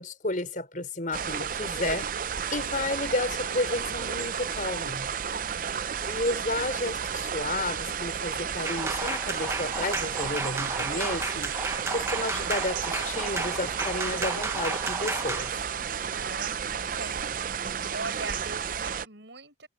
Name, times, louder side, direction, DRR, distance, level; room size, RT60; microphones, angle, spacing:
voice 1, 0.0-2.1 2.5-5.1 6.1-11.5 11.9-15.5, left 2 dB, 45° left, 5.3 m, -32 dB
sound 1, 1.1-19.1, right 7 dB, 45° right, 0.5 m, -32 dB
voice 2, 5.3-6.0 16.1-17.3 17.9-19.7, right 3 dB, 70° right, 6.5 m, -41 dB
sound 2, 8.6-15.5, right 3 dB, 15° right, 1.0 m, -33 dB
head